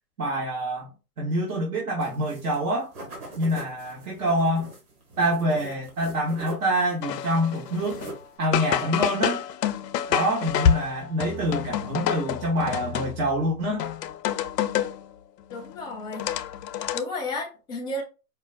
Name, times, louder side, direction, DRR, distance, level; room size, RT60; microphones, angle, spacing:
voice 1, 0.2-2.9 3.4-4.7 5.2-8.0 8.4-9.4 10.1-13.8, equal, 60° right, 1.3 m, -26 dB
sound 1, 2.0-2.6 2.9-6.9 7.2-8.4, right 2 dB, 30° right, 1.4 m, -42 dB
sound 2, 7.0-8.2 8.5-13.4 13.8-15.0 15.5-17.0, left 9 dB, 85° left, 0.5 m, -28 dB
voice 2, 15.5-16.3 16.9-18.0, left 2 dB, 10° left, 0.6 m, -32 dB
5.0 x 2.3 x 2.5 m
hypercardioid pair, 145°, 48 cm